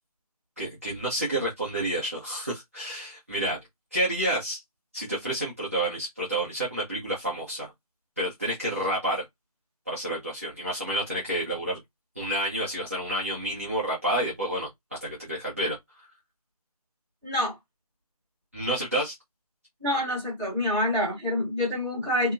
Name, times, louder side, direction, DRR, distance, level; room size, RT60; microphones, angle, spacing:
voice 1, 0.6-3.6 3.9-4.6 4.9-7.7 8.2-9.2 9.9-11.8 12.2-14.7 15.0-16.1 18.5-19.1, right 1 dB, 20° right, 0.8 m, -29 dB
voice 2, 17.2-17.6 19.8-22.3, left 1 dB, 5° right, 1.2 m, -27 dB
3.6 x 2.8 x 2.6 m
figure-of-eight pair, 180°, 20 cm